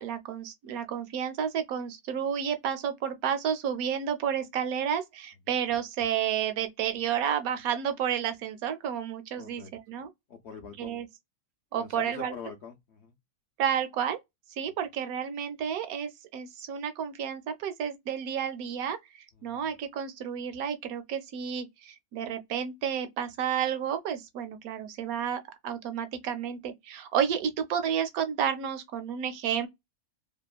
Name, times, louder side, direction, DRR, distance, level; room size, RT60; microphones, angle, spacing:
voice 1, 0.0-10.1 10.8-11.1 11.7-12.3 13.6-14.2 14.6-19.0 19.4-29.7, right 8 dB, 70° right, 1.0 m, -31 dB
voice 2, 9.4-9.7 10.3-10.9 11.7-13.1 14.6-14.7 19.4-19.7, left 6 dB, 75° left, 0.6 m, -44 dB
2.8 x 2.2 x 2.3 m
omnidirectional pair, 1.7 m